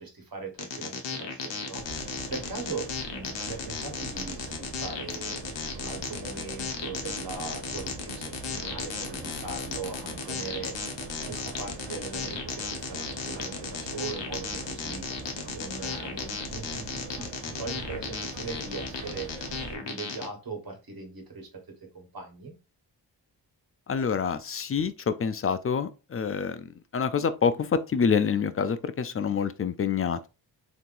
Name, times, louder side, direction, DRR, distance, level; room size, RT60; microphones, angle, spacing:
voice 1, 0.0-5.4 5.7-10.7 11.2-15.0 15.5-19.3 19.7-22.5, right 4 dB, 50° right, 1.4 m, -40 dB
sound 1, 0.6-20.3, left 5 dB, 70° left, 0.9 m, -35 dB
sound 2, 1.8-19.8, right 3 dB, 75° right, 0.9 m, -42 dB
voice 2, 23.9-30.3, left 6 dB, 30° left, 0.4 m, -27 dB
3.6 x 2.9 x 2.5 m
supercardioid pair, 40°, 45 cm